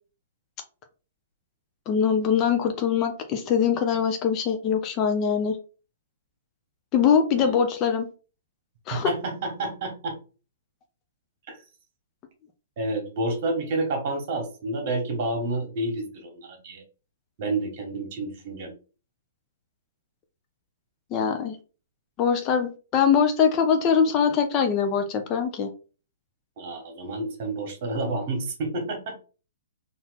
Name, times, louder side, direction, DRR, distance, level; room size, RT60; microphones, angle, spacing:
voice 1, 1.9-5.6 6.9-8.1 8.9-9.1 21.1-21.6 22.2-25.7, left 7 dB, 30° left, 5 dB, 0.7 m, -22 dB
voice 2, 8.9-10.2 11.5-11.6 12.8-16.8 17.4-18.7 26.6-29.1, right 2 dB, 45° right, 3 dB, 1.8 m, -29 dB
4.1 x 2.8 x 4.1 m, 0.35 s
hypercardioid pair, 130°, 0 cm